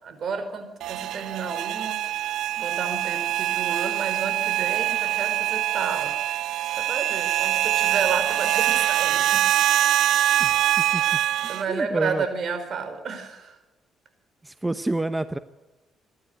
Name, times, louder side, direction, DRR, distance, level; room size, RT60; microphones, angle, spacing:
voice 1, 0.0-6.1 6.7-9.4 10.6-13.6, right 5 dB, 60° right, 9 dB, 4.9 m, -32 dB
sound 1, 0.8-11.6, right 13 dB, 80° right, 0.7 m, -24 dB
voice 2, 10.4-12.2 14.4-15.4, right 2 dB, 15° right, 12 dB, 0.9 m, -29 dB
27.5 x 12.0 x 9.5 m, 1.1 s
cardioid pair, 90°, 0 cm